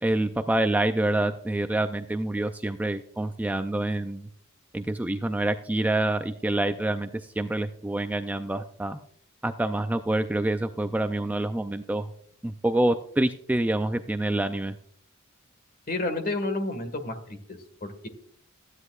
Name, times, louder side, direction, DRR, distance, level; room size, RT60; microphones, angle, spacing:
voice 1, 0.0-4.3 4.7-9.0 9.4-12.1 12.4-14.8, right 1 dB, 10° right, 8 dB, 0.3 m, -27 dB
voice 2, 15.9-18.1, left 2 dB, 45° left, 8 dB, 1.6 m, -31 dB
14.5 x 9.8 x 2.4 m, 0.63 s
head